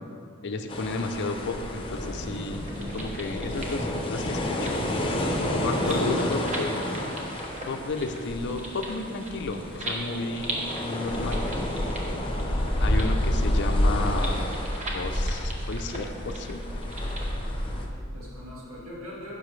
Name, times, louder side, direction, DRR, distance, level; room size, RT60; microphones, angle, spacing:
voice 1, 0.4-4.7 5.6-6.7 7.7-11.5 12.8-14.5 14.9-16.6, left 3 dB, 55° left, 6 dB, 0.5 m, -32 dB
sound 1, 0.7-17.9, left 1 dB, 25° left, 0.7 m, -29 dB
sound 2, 2.5-17.3, right 1 dB, 35° right, 1.0 m, -40 dB
voice 2, 5.3-6.3 17.7-19.3, left 2 dB, 85° right, -6 dB, 2.0 m, -37 dB
9.9 x 6.8 x 3.2 m, 2.5 s
head